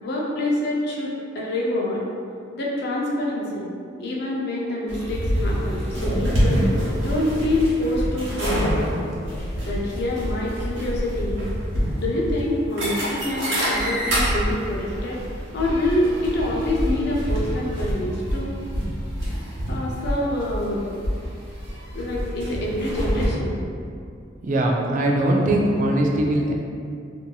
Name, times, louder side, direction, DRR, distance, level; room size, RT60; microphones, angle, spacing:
voice 1, 0.0-2.1 2.5-3.7 4.0-6.7 7.0-9.0 9.7-11.5 12.0-15.2 15.5-18.5 19.7-20.8 21.9-23.6, left 1 dB, 55° left, -3 dB, 0.5 m, -26 dB
sound 1, 4.9-23.3, equal, 65° right, 1.0 m, -26 dB
voice 2, 24.4-26.5, right 1 dB, 40° right, 0 dB, 0.3 m, -21 dB
2.8 x 2.6 x 2.2 m, 2.4 s
head